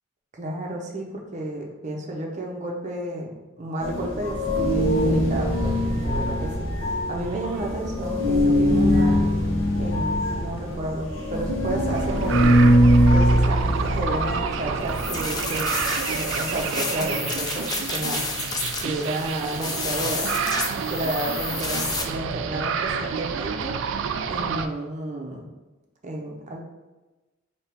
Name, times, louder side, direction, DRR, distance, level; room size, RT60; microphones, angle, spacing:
voice 1, 0.3-9.2 9.8-12.6 13.1-15.7 16.1-18.3 18.8-20.3 20.8-23.7 24.3-25.5 26.0-26.6, right 1 dB, 35° right, 0 dB, 0.7 m, -32 dB
sound 1, 3.8-16.6, equal, 70° left, 1.2 m, -22 dB
sound 2, 11.9-24.7, right 6 dB, 65° right, 0.3 m, -29 dB
sound 3, 14.9-22.0, left 4 dB, 20° left, 0.4 m, -31 dB
4.5 x 2.8 x 3.4 m, 1.1 s
head